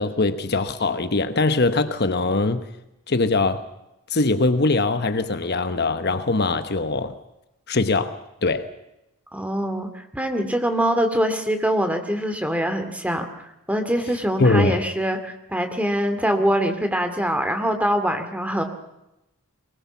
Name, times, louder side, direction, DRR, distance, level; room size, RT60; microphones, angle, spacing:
voice 1, 0.0-2.7 3.1-3.6 4.1-7.2 7.7-8.7 14.4-14.9, left 3 dB, 45° left, 1.1 m, -22 dB
voice 2, 9.3-13.3 13.7-18.6, equal, 5° right, 2.3 m, -23 dB
23.5 x 20.5 x 7.2 m
head